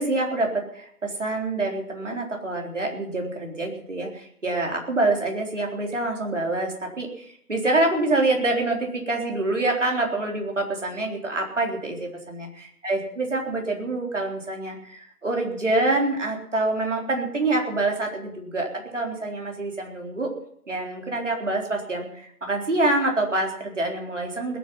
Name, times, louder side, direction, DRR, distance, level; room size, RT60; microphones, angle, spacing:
voice 1, 0.0-20.3 20.7-24.6, right 2 dB, 50° right, 1 dB, 4.0 m, -26 dB
20.0 x 9.5 x 5.7 m, 0.66 s
figure-of-eight pair, 175°, 46 cm